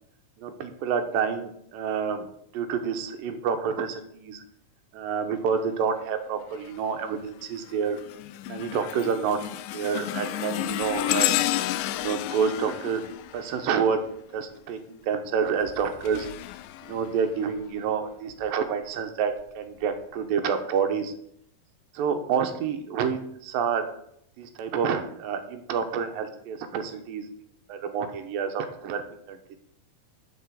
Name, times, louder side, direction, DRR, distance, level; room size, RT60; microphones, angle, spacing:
voice 1, 0.4-2.3 2.5-4.4 4.9-8.0 8.5-9.4 9.7-11.3 11.9-13.0 13.3-14.0 14.3-16.3 16.8-21.1 21.9-23.8 24.4-27.3 27.7-29.0 29.3-29.6, right 6 dB, 85° right, 6 dB, 2.7 m, -28 dB
sound 1, 6.5-6.9 7.4-14.2 15.5-17.7 18.3-18.5 19.4-19.5, left 15 dB, 80° left, 2.0 m, -32 dB
7.2 x 6.1 x 7.3 m, 0.72 s
omnidirectional pair, 3.9 m